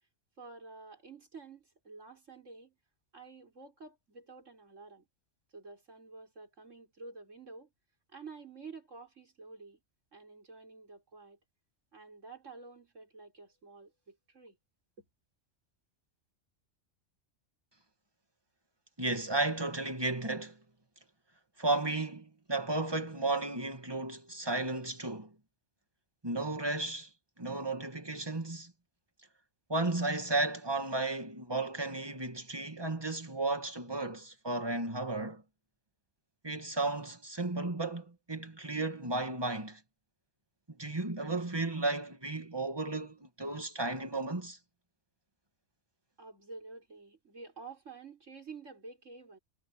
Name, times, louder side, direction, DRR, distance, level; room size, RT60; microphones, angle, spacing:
voice 1, 0.4-2.7 3.1-5.0 5.5-7.7 8.1-9.8 10.1-11.4 11.9-14.6 15.0-15.1 46.2-49.4, right 4 dB, 80° right, 5.1 m, -50 dB
voice 2, 19.0-20.6 21.6-25.3 26.2-27.1 27.4-28.7 29.7-35.4 36.4-39.8 40.7-44.6, right 2 dB, 20° right, 2.4 m, -34 dB
omnidirectional pair, 1.3 m